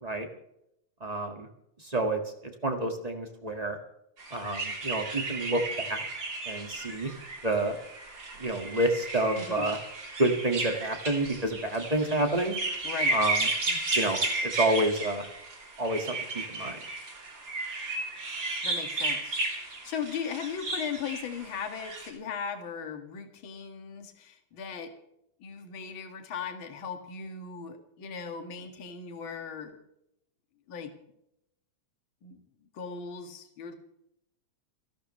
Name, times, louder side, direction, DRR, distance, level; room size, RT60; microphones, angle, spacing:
voice 1, 1.0-1.5 1.8-2.2 2.6-3.8 4.3-6.0 6.4-7.1 7.4-7.7 8.4-9.8 10.2-12.6 13.1-13.4 13.7-14.2 14.5-15.2 15.8-16.2 16.5-16.8, right 1 dB, 20° right, 4 dB, 1.2 m, -28 dB
sound 1, 4.2-22.1, right 2 dB, 35° right, 3.9 m, -34 dB
voice 2, 9.3-9.7 12.8-13.2 18.6-24.9 25.4-29.8 30.7-30.9 32.2-32.4 32.7-33.8, left 6 dB, 45° left, 6 dB, 2.4 m, -38 dB
29.5 x 11.5 x 3.2 m, 0.78 s
omnidirectional pair, 3.7 m